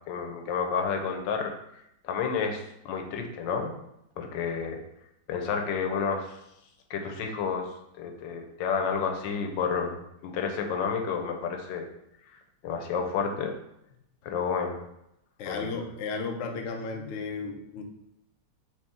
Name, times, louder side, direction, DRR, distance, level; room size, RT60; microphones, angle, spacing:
voice 1, 0.1-1.5 2.0-3.7 4.2-4.8 5.3-6.3 6.9-7.7 8.0-10.0 10.2-11.9 12.6-13.5 14.2-14.8 15.5-15.8, left 6 dB, 90° left, 4 dB, 1.3 m, -30 dB
voice 2, 15.4-17.8, left 4 dB, 65° left, 3 dB, 0.7 m, -34 dB
4.2 x 3.0 x 3.5 m, 0.81 s
omnidirectional pair, 1.9 m